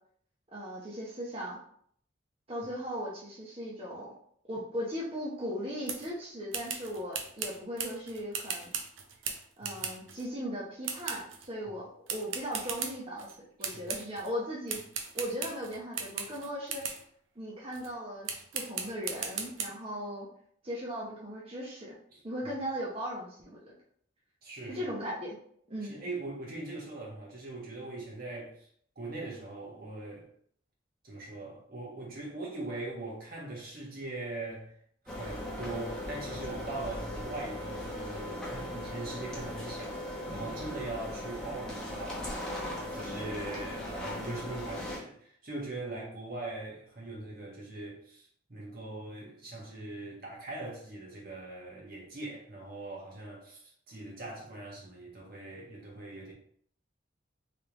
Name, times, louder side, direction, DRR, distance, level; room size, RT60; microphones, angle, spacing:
voice 1, 0.5-1.6 2.5-4.1 4.5-8.7 9.6-13.3 13.6-14.8 15.1-16.8 17.4-20.3 20.6-21.9 22.2-23.7 24.7-25.4 25.7-25.9, equal, 30° right, -5 dB, 0.8 m, -38 dB
sound 1, 5.9-6.1 6.5-10.3 10.8-11.5 12.1-13.3 13.6-14.3 14.7-17.1 17.7-17.9 18.3-19.7, right 6 dB, 90° right, 0.6 m, -38 dB
voice 2, 9.6-9.9 11.7-11.8 13.6-13.9 22.1-22.2 24.4-24.9 25.8-28.7 28.9-30.3 31.0-34.7 35.2-42.3 42.9-56.3, right 2 dB, 50° right, -3 dB, 1.3 m, -41 dB
sound 2, 35.1-45.0, left 1 dB, 5° left, 0.8 m, -38 dB
3.4 x 3.3 x 2.9 m, 0.63 s
head